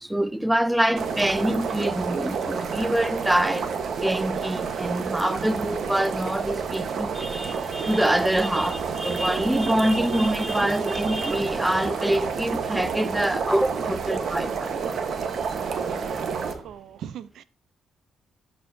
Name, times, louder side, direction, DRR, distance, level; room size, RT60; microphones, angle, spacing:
voice 1, 0.0-3.7 4.0-14.9, right 1 dB, 5° right, 0.4 m, -25 dB
sound 1, 1.0-16.5, right 6 dB, 60° right, 1.2 m, -29 dB
sound 2, 12.1-16.7, right 3 dB, 35° right, 4.1 m, -52 dB
voice 2, 16.5-17.4, right 9 dB, 75° right, 0.5 m, -39 dB
11.0 x 4.5 x 2.7 m
cardioid pair, 90°, 0 cm